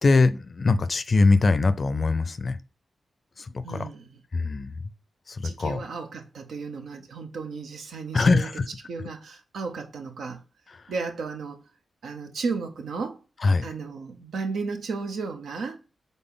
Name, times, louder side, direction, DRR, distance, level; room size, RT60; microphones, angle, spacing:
voice 1, 0.0-2.6 3.4-3.9 4.3-4.8 5.3-5.8 8.1-8.7 10.7-10.8 13.4-13.7, left 3 dB, 55° left, 0.5 m, -22 dB
voice 2, 3.6-4.2 5.4-8.5 8.9-10.4 10.9-11.6 12.0-13.2 13.6-15.8, right 4 dB, 80° right, 0.7 m, -34 dB
4.0 x 3.6 x 3.7 m
cardioid pair, 50°, 0 cm